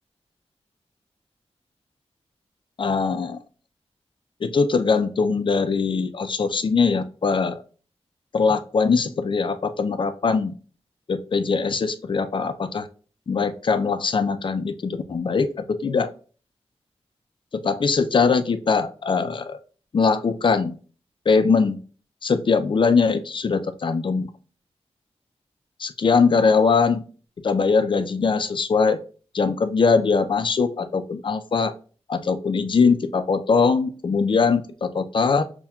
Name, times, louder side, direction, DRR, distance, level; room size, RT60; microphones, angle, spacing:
voice 1, 2.8-3.4 4.4-7.6 8.3-10.5 11.1-12.9 13.3-16.1 17.5-19.6 19.9-20.8 21.3-21.8 22.2-24.3 25.8-27.0 27.4-29.0 29.3-31.7 32.1-35.4, left 5 dB, 45° left, 9 dB, 0.4 m, -21 dB
5.6 x 2.2 x 2.3 m, 0.39 s
wide cardioid pair, 80°, 11 cm